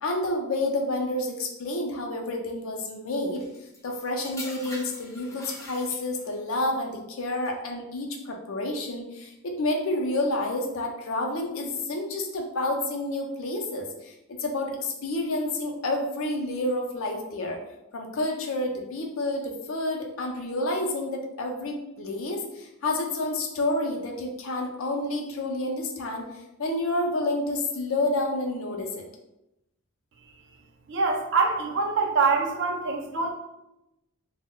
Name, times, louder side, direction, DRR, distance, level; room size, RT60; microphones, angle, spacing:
voice 1, 0.0-3.4 3.8-14.1 14.4-17.6 17.9-26.2 26.6-29.0, left 2 dB, 65° left, 2 dB, 0.5 m, -29 dB
sound 1, 3.3-6.4 7.2-7.5, left 2 dB, 15° left, 0.5 m, -43 dB
voice 2, 30.9-33.3, right 4 dB, 55° right, 2 dB, 0.4 m, -24 dB
2.2 x 2.1 x 3.6 m, 0.91 s
head